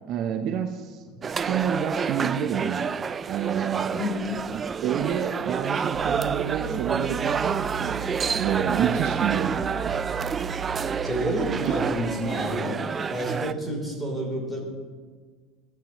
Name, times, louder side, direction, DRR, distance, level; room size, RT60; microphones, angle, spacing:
voice 1, 0.1-1.0 1.5-2.9 3.3-4.0 4.5-8.0 8.3-9.9 11.6-11.8, right 9 dB, 55° right, 6 dB, 0.7 m, -28 dB
sound 1, 1.2-13.5, right 6 dB, 25° right, 0.3 m, -29 dB
voice 2, 4.0-4.3 11.0-12.8 13.1-14.6, equal, ahead, -1 dB, 3.4 m, -29 dB
sound 2, 5.9-11.9, right 7 dB, 80° right, 0.9 m, -36 dB
17.0 x 7.4 x 3.0 m, 1.5 s
supercardioid pair, 105°, 0 cm